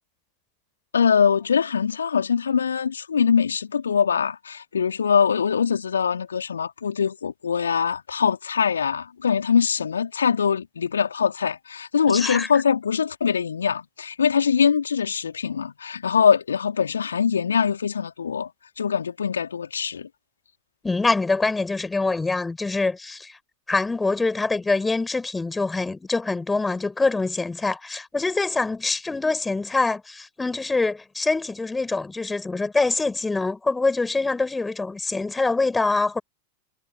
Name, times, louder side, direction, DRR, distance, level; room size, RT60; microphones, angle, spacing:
voice 1, 0.9-18.5 18.8-20.1, left 6 dB, 70° left, 4.0 m, -23 dB
voice 2, 12.1-12.5 20.8-23.4 23.7-36.2, left 3 dB, 10° left, 5.7 m, -24 dB
figure-of-eight pair, 90°, 0 cm